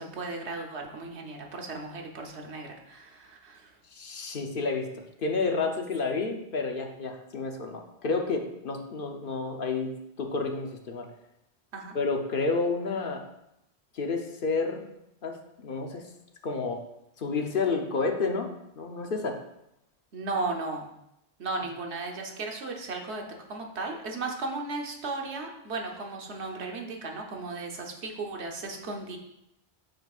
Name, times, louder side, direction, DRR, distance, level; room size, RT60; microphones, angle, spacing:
voice 1, 0.0-3.7 11.7-11.9 20.1-20.9 21.4-23.2 23.5-29.2, right 3 dB, 85° right, 2 dB, 1.2 m, -35 dB
voice 2, 3.9-4.9 5.2-9.9 10.2-11.1 11.9-13.2 13.9-14.8 15.2-16.0 16.4-16.8 17.2-18.5 18.8-19.4, left 4 dB, 55° left, 3 dB, 0.9 m, -30 dB
9.5 x 5.1 x 2.4 m, 0.82 s
omnidirectional pair, 1.1 m